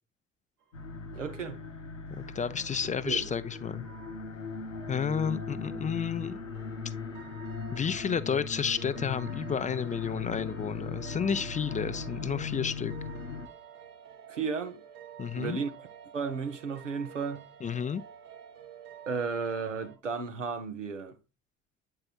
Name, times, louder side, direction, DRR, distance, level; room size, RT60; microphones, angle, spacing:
sound 1, 0.6-20.0, right 8 dB, 60° right, 1.3 m, -51 dB
sound 2, 0.7-13.5, left 5 dB, 90° left, 0.6 m, -39 dB
voice 1, 1.1-1.6 3.0-3.2 14.3-14.8 15.4-15.9 16.1-17.4 19.1-21.2, right 5 dB, 90° right, 0.8 m, -34 dB
voice 2, 2.1-3.9 4.9-6.4 7.7-12.9 15.2-15.6 17.6-18.0, left 7 dB, 20° left, 0.5 m, -31 dB
8.6 x 4.6 x 2.4 m
figure-of-eight pair, 55°, 36 cm